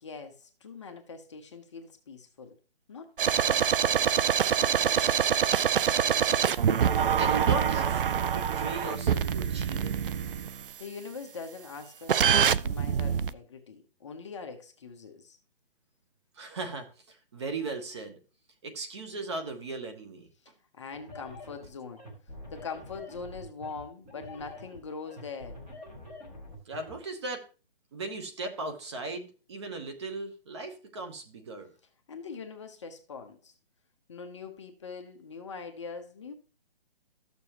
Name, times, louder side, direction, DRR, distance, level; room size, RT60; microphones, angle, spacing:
voice 1, 0.0-2.6 2.9-4.1 10.8-15.4 20.4-22.0 22.5-25.6 32.1-33.5 34.1-36.3, left 5 dB, 30° left, 0.8 m, -42 dB
sound 1, 3.2-10.6 12.1-13.3, right 8 dB, 60° right, 0.5 m, -25 dB
voice 2, 7.2-9.9 16.3-18.2 18.6-20.3 26.7-27.4 27.9-31.7, right 3 dB, 25° right, 1.0 m, -37 dB
sound 2, 20.9-26.9, left 1 dB, 5° right, 0.6 m, -46 dB
13.0 x 6.9 x 2.9 m
hypercardioid pair, 165°, 31 cm